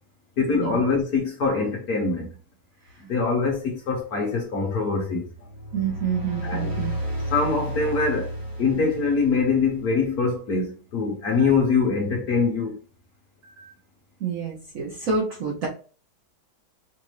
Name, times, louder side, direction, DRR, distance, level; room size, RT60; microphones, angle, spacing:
voice 1, 0.4-2.3 3.1-5.3 6.4-6.7 7.3-8.3 8.6-12.8, left 4 dB, 55° left, 1.2 m, -23 dB
sound 1, 5.4-10.0, right 1 dB, 15° right, 0.9 m, -32 dB
voice 2, 5.7-6.9 13.4-13.7 14.2-15.7, right 6 dB, 55° right, 1.0 m, -28 dB
5.2 x 2.6 x 3.2 m
omnidirectional pair, 2.3 m